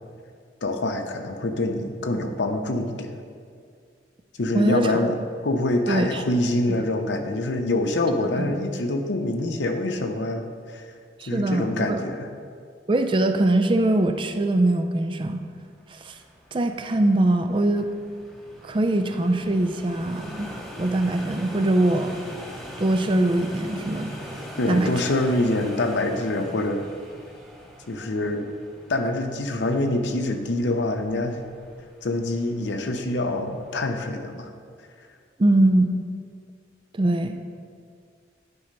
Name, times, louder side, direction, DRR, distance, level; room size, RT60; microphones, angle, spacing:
voice 1, 0.6-3.1 4.4-10.4 10.7-10.8 11.3-12.3 24.6-26.9 27.9-28.5 28.9-31.4 32.0-34.5, left 2 dB, 75° left, 6 dB, 0.7 m, -25 dB
voice 2, 4.5-5.0 5.9-6.2 8.2-8.5 11.2-12.0 12.9-15.4 15.9-16.1 16.5-17.9 18.6-20.5 20.8-22.2 22.8-24.1 24.7-24.9 35.4-35.9 36.9-37.4, right 1 dB, 25° right, 7 dB, 0.4 m, -22 dB
sound 1, 15.8-34.1, equal, ahead, 0.8 m, -42 dB
10.5 x 4.3 x 5.2 m, 2.1 s
head